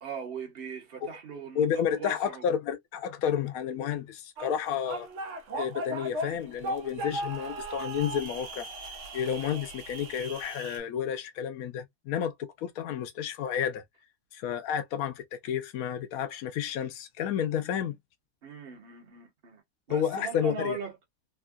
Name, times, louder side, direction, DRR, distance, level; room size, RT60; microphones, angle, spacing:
voice 1, 0.0-2.4 18.4-19.6 19.9-21.0, right 5 dB, 45° right, 1.2 m, -39 dB
voice 2, 1.6-5.1 5.5-8.7 9.1-13.8 14.3-17.9 19.9-20.8, left 8 dB, 80° left, 1.1 m, -31 dB
November demonstrations Bangkok Thailand, 4.4-10.8, right 1 dB, 60° right, 1.0 m, -37 dB
3.5 x 2.2 x 2.3 m
omnidirectional pair, 1.5 m